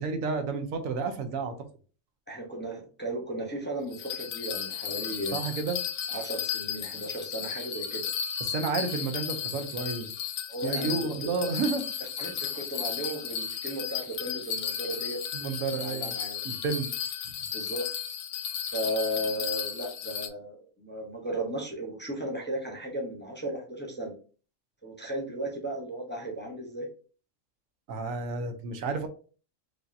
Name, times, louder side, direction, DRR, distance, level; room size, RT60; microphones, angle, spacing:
voice 1, 0.0-1.5 5.3-5.8 8.4-10.1 10.6-11.8 15.3-16.1 16.4-16.9 27.9-29.1, right 4 dB, 90° right, 7 dB, 1.1 m, -31 dB
voice 2, 2.3-5.4 6.1-8.1 10.5-10.9 11.2-11.3 12.2-16.4 17.5-17.8 18.7-24.1 24.8-26.9, right 1 dB, 10° left, 0 dB, 0.8 m, -35 dB
Bell, 3.9-20.3, left 8 dB, 85° left, 1.0 m, -34 dB
4.9 x 2.7 x 2.6 m, 0.39 s
omnidirectional pair, 1.4 m